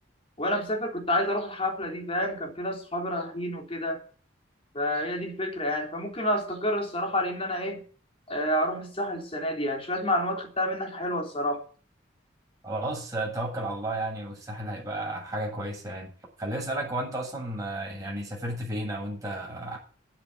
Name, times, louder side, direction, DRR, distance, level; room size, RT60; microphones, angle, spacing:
voice 1, 0.4-4.0 4.7-7.8 8.3-11.6, left 1 dB, 30° left, 3.6 m, -29 dB
voice 2, 12.6-16.1 16.4-19.8, right 1 dB, 20° right, 8.0 m, -33 dB
12.0 x 8.0 x 9.1 m
head